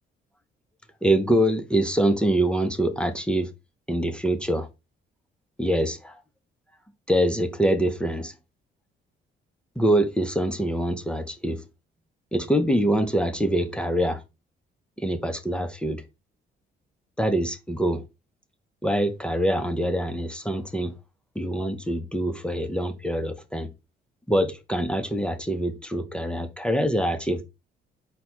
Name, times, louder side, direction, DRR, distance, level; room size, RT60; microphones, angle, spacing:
voice 1, 1.0-3.5 3.9-4.7 5.6-6.2 7.1-8.3 9.8-11.6 12.3-14.2 15.0-16.0 17.2-18.0 18.8-20.9 21.4-23.7 24.3-27.4, right 1 dB, 5° left, 0.7 m, -24 dB
4.5 x 2.2 x 4.3 m
cardioid pair, 90°, 20 cm